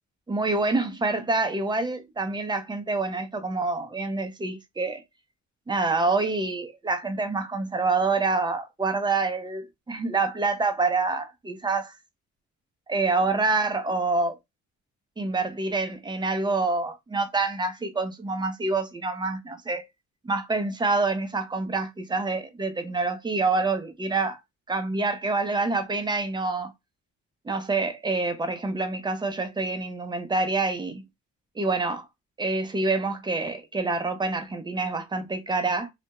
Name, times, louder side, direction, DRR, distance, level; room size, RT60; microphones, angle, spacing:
voice 1, 0.3-5.0 5.7-11.9 12.9-14.4 15.2-19.8 20.2-24.4 24.7-26.7 27.4-31.0 31.6-32.1 32.4-35.9, right 3 dB, 15° right, 0.5 m, -27 dB
2.3 x 2.0 x 2.8 m
cardioid pair, 90°, 30 cm